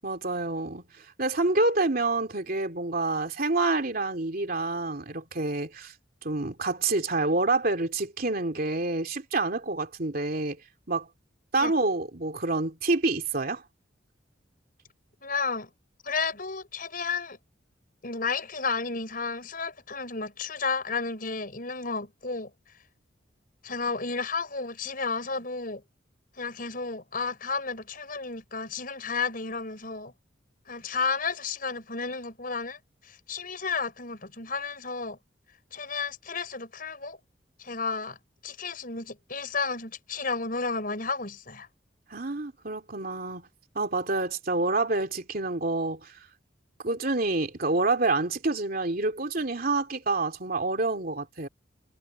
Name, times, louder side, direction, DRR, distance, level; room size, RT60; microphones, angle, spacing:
voice 1, 0.0-5.9 6.2-10.6 10.9-11.1 11.5-13.6 42.1-43.5 43.7-46.2 46.8-51.5, right 3 dB, 50° right, 3.0 m, -27 dB
voice 2, 15.2-15.7 16.0-17.4 18.0-22.5 23.6-25.8 26.4-30.1 30.7-35.2 35.7-37.2 37.6-38.2 38.4-41.7, left 4 dB, 50° left, 5.4 m, -32 dB
head